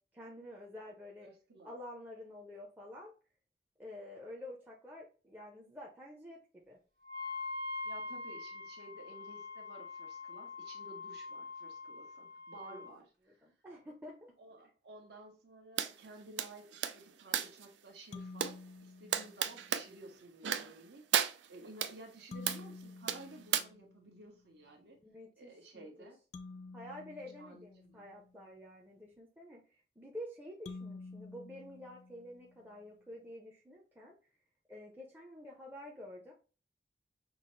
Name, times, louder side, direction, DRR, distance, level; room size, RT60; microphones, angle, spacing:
voice 1, 0.1-1.3 1.6-3.1 3.8-6.4 6.7-6.8 12.6-12.9 13.3-14.3 25.0-26.1 26.7-34.1 34.7-36.3, left 1 dB, 10° right, 0.6 m, -49 dB
voice 2, 1.2-1.7 7.8-13.4 14.4-25.0 25.4-26.2 27.4-28.1, right 2 dB, 70° right, 1.2 m, -54 dB
Wind instrument woodwind instrument, 7.0-12.9, left 3 dB, 50° right, 0.9 m, -43 dB
sound 1, 15.8-15.9 16.4-17.7 18.4-18.5 19.1-19.9 20.4-20.8 21.1-21.9 22.5-22.7 23.1-23.6, right 9 dB, 90° right, 0.4 m, -33 dB
sound 2, 18.1-19.8 22.3-24.3 26.3-28.5 30.7-32.7, left 3 dB, 40° left, 0.3 m, -50 dB
5.9 x 2.0 x 3.2 m
head